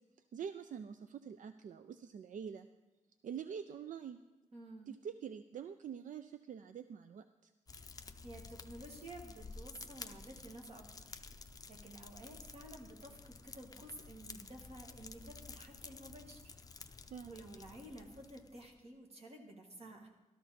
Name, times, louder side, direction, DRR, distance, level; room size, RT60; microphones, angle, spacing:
voice 1, 0.3-2.7 3.2-4.2 4.9-7.5 17.1-17.3, right 7 dB, 80° right, 10 dB, 0.4 m, -46 dB
voice 2, 4.5-4.9 8.2-11.2 11.7-16.5 17.2-20.1, right 1 dB, 50° right, 1 dB, 1.9 m, -52 dB
Fire, 7.7-18.8, left 4 dB, 30° left, 0.5 m, -52 dB
13.0 x 13.0 x 4.2 m, 1.1 s
wide cardioid pair, 180°, 13 cm